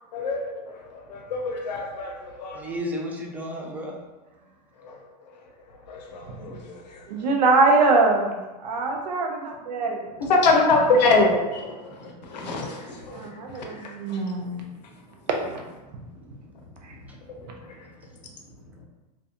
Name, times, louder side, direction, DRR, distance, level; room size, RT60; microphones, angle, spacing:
voice 1, 0.1-2.6 4.8-5.0 5.9-7.0 10.2-13.3 13.5-14.2, left 3 dB, 90° left, 2 dB, 0.6 m, -25 dB
voice 2, 2.5-4.0 11.9-12.2 14.4-15.2 15.8-18.9, equal, 10° right, -1 dB, 0.3 m, -38 dB
voice 3, 7.1-10.1 12.5-12.8 13.1-14.6, right 3 dB, 85° right, 1 dB, 0.6 m, -23 dB
2.3 x 2.3 x 2.7 m, 1.1 s
supercardioid pair, 130°, 21 cm